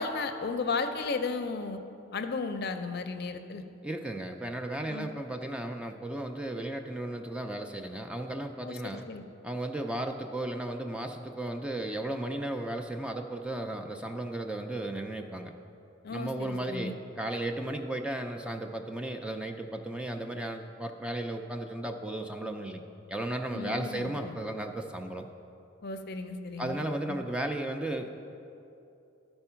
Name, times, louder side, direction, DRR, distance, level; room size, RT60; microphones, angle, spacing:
voice 1, 0.0-1.8 2.1-3.6 4.9-5.1 8.6-9.2 16.0-16.9 23.5-24.3 25.8-26.8 27.1-27.2, left 4 dB, 55° left, 8 dB, 0.5 m, -34 dB
voice 2, 3.8-9.1 9.4-15.5 16.1-22.8 23.1-25.3 26.6-28.2, right 1 dB, 5° right, 4 dB, 0.4 m, -35 dB
12.5 x 4.4 x 5.6 m, 2.8 s
head